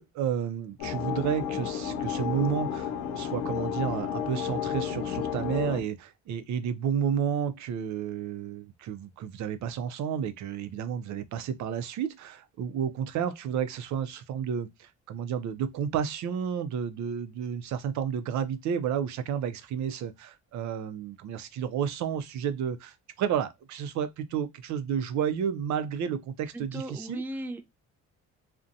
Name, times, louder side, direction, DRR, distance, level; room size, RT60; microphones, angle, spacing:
voice 1, 0.0-27.2, right 8 dB, 70° right, 0.4 m, -31 dB
sound 1, 0.8-5.8, left 8 dB, 90° left, 0.6 m, -32 dB
voice 2, 26.5-27.6, right 1 dB, 5° right, 0.3 m, -36 dB
2.5 x 2.1 x 2.5 m
cardioid pair, 90°, 30 cm